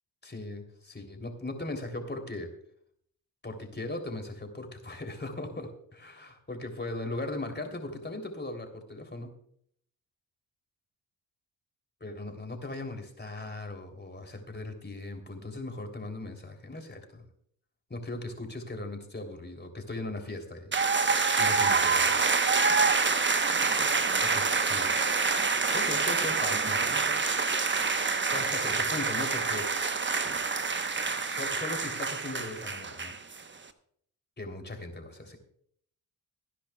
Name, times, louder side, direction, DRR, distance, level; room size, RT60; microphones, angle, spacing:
voice 1, 0.2-2.5 3.4-9.3 12.0-17.3 17.9-20.7 21.4-22.2 24.2-25.0 25.7-26.8 28.3-29.7 31.2-33.1 34.4-35.4, left 2 dB, 20° left, 4 dB, 3.3 m, -38 dB
sound 1, 20.7-33.4, right 4 dB, 25° right, 1.1 m, -27 dB
25.0 x 10.0 x 2.4 m, 0.66 s
hypercardioid pair, 45°, 49 cm